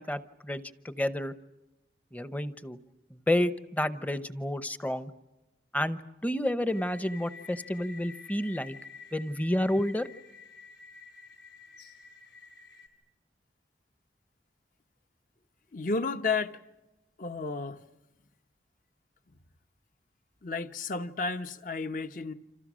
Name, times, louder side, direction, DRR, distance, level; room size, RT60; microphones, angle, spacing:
voice 1, 0.0-1.3 2.1-2.8 3.1-5.1 5.7-8.8 9.1-10.1, left 1 dB, 10° left, 0.8 m, -30 dB
sound 1, 6.7-12.9, left 5 dB, 75° left, 4.3 m, -50 dB
voice 2, 15.7-16.6 17.2-17.8 20.4-22.3, left 4 dB, 50° left, 1.0 m, -32 dB
28.5 x 27.0 x 6.3 m
head